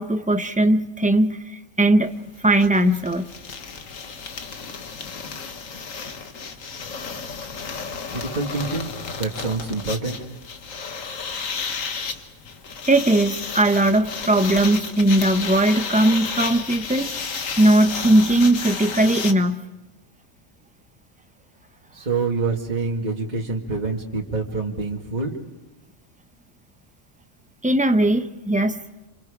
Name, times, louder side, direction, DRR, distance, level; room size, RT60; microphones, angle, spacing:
voice 1, 0.0-3.3 12.9-17.1 17.6-19.6 27.6-28.8, right 1 dB, 10° right, 8 dB, 0.7 m, -19 dB
sound 1, 2.1-2.2 2.4-19.3, left 5 dB, 85° left, 1.7 m, -32 dB
voice 2, 8.1-8.9 9.2-10.2 21.9-25.3, right 3 dB, 35° right, 0 dB, 2.1 m, -26 dB
28.0 x 26.5 x 5.0 m, 1.1 s
omnidirectional pair, 1.3 m